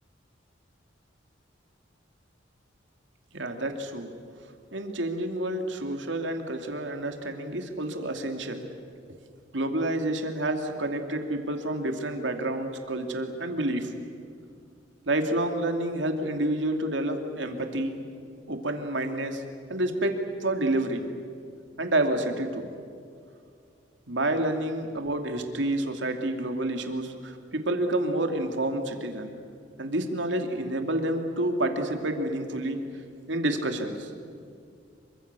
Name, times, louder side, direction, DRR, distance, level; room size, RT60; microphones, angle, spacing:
voice 1, 3.3-4.1 4.7-8.6 9.5-13.9 15.1-18.0 18.5-19.4 19.7-21.0 21.8-22.7 24.1-29.3 29.8-32.8 33.3-34.1, right 1 dB, 80° right, 5 dB, 2.7 m, -29 dB
27.0 x 25.0 x 7.0 m, 2.4 s
head